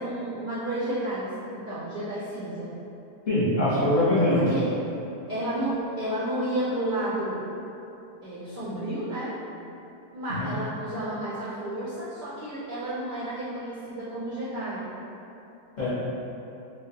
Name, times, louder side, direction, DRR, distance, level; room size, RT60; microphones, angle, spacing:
voice 1, 0.0-2.7 4.3-4.7 5.3-7.5 8.2-9.3 10.1-14.9, right 1 dB, 60° right, -10 dB, 0.5 m, -31 dB
voice 2, 3.3-4.4 10.4-10.5 15.8-15.9, left 1 dB, 40° left, -11 dB, 0.8 m, -22 dB
3.2 x 2.2 x 2.7 m, 2.8 s
omnidirectional pair, 1.4 m